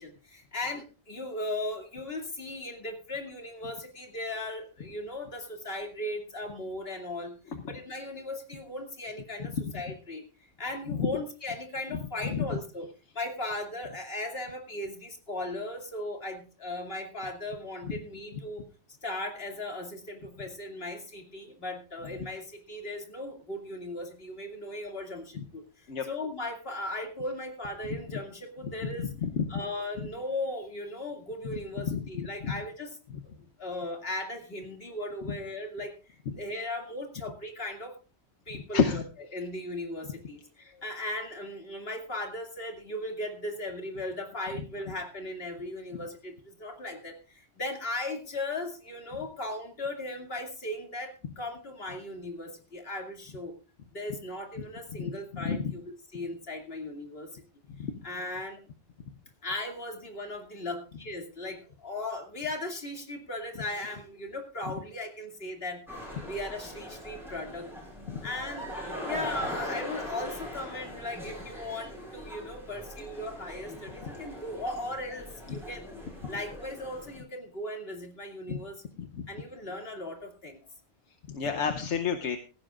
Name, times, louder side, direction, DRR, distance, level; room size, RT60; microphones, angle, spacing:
voice 1, 0.0-12.9 13.1-18.6 19.0-29.1 29.5-33.0 33.6-37.9 38.5-39.0 39.3-53.5 53.9-57.4 58.0-58.6 59.4-65.8 66.3-67.7 68.2-68.7 69.0-75.8 76.3-78.8 79.3-80.6 81.5-81.7, left 1 dB, 60° left, 3 dB, 2.7 m, -37 dB
voice 2, 29.0-29.4 30.0-30.1 31.8-32.0 32.4-32.5 35.3-35.4 38.5-39.0 55.0-55.1 55.4-55.7 57.8-57.9 68.1-68.2 75.5-75.6 78.5-78.6 79.0-79.2 81.3-82.4, left 6 dB, 85° left, 5 dB, 1.2 m, -29 dB
sound 1, 65.9-77.2, left 1 dB, ahead, 6.4 m, -41 dB
16.5 x 15.5 x 2.4 m, 0.33 s
omnidirectional pair, 1.2 m